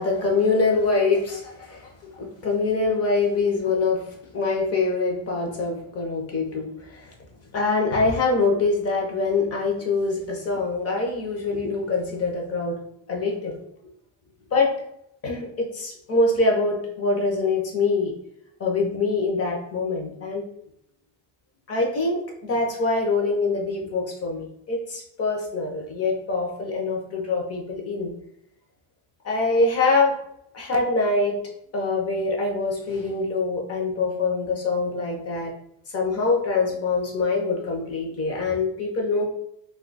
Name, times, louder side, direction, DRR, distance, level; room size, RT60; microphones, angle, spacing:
voice 1, 0.0-1.9 2.2-7.1 7.5-12.8 13.1-13.7 14.5-14.8 15.2-18.1 18.6-20.4 21.7-28.1 29.2-30.2 30.5-31.4 31.7-35.5 35.9-39.2, left 3 dB, 35° left, 0 dB, 0.6 m, -24 dB
2.7 x 2.3 x 3.9 m, 0.74 s
cardioid pair, 175°, 45 cm